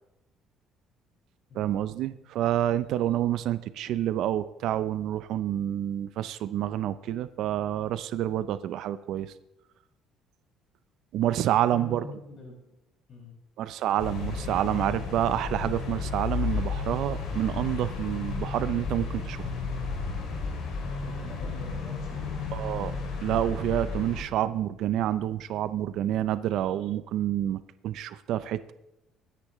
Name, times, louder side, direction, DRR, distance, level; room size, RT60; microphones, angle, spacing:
voice 1, 1.5-9.3 11.1-12.0 13.6-19.5 22.5-22.9 23.2-28.7, right 12 dB, 60° right, 14 dB, 0.5 m, -28 dB
voice 2, 11.5-12.8 13.1-13.3 21.0-22.7, left 2 dB, 35° left, -3 dB, 5.7 m, -44 dB
sound 1, 14.0-24.2, left 4 dB, 60° left, 2.5 m, -33 dB
22.0 x 10.0 x 3.1 m, 0.88 s
cardioid pair, 175°, 0 cm